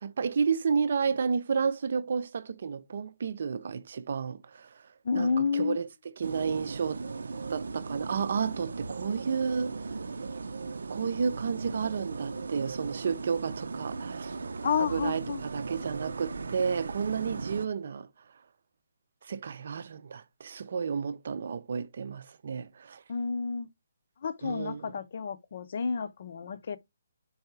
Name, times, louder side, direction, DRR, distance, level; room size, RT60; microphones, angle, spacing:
voice 1, 0.0-4.7 5.1-7.0 7.5-9.8 10.1-10.3 10.9-14.4 14.8-18.1 19.2-23.0 24.4-24.9, right 6 dB, 45° right, 0.6 m, -31 dB
voice 2, 5.0-5.8 14.6-15.4 23.1-23.7 24.2-26.8, left 5 dB, 45° left, 0.6 m, -30 dB
sound 1, 6.2-17.7, right 4 dB, 85° right, 0.7 m, -38 dB
5.4 x 4.8 x 4.6 m
hypercardioid pair, 175°, 0 cm